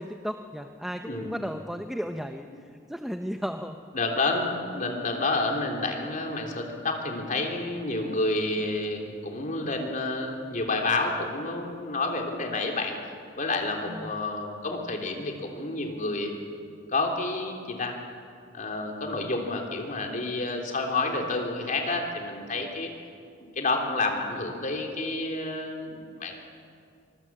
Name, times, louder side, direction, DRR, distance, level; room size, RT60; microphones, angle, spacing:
voice 1, 0.0-2.5 2.9-3.8 13.9-14.2, equal, ahead, 5 dB, 0.7 m, -34 dB
voice 2, 1.0-1.3 2.5-2.6 3.9-13.0 13.4-16.3 16.9-18.0 18.5-22.9 23.6-26.3, left 2 dB, 45° left, 2 dB, 3.4 m, -29 dB
24.5 x 22.0 x 7.6 m, 2.4 s
head